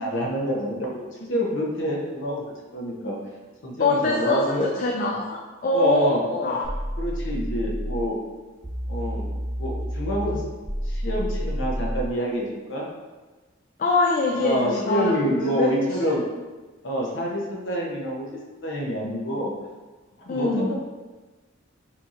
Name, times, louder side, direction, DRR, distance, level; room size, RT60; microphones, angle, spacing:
voice 1, 0.0-3.2 3.6-4.8 5.7-6.2 7.0-8.2 8.9-9.3 9.6-10.4 10.9-12.9 14.3-16.2 16.8-19.5 20.3-20.8, equal, 70° left, -2 dB, 0.8 m, -27 dB
voice 2, 3.8-6.6 13.8-15.7 20.3-20.7, left 3 dB, 45° left, -1 dB, 0.3 m, -24 dB
sound 1, 6.6-8.1 8.6-12.1, equal, 15° right, 0.5 m, -29 dB
4.4 x 2.8 x 2.5 m, 1.2 s
head